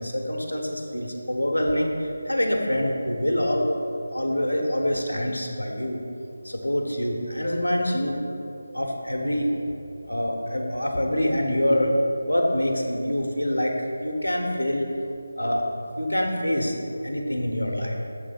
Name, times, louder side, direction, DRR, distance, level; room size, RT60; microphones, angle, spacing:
voice 1, 0.0-3.7 4.1-6.0 6.4-8.3 8.7-9.5 10.0-11.9 12.2-14.9 15.4-15.6 16.0-16.7 17.0-18.0, left 1 dB, 85° left, 1 dB, 0.9 m, -25 dB
6.7 x 3.4 x 5.2 m, 2.7 s
figure-of-eight pair, 160°, 0 cm